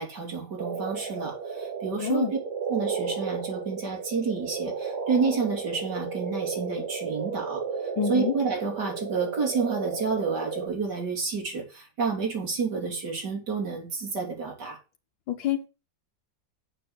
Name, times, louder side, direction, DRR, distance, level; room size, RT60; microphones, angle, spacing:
voice 1, 0.0-2.3 2.7-7.6 8.1-14.8, right 5 dB, 65° right, 3.8 m, -30 dB
sound 1, 0.6-10.7, right 5 dB, 40° right, 5.0 m, -33 dB
voice 2, 2.0-2.3 8.0-8.3 15.3-15.7, left 9 dB, 90° left, 1.8 m, -27 dB
7.4 x 6.5 x 6.4 m
omnidirectional pair, 2.0 m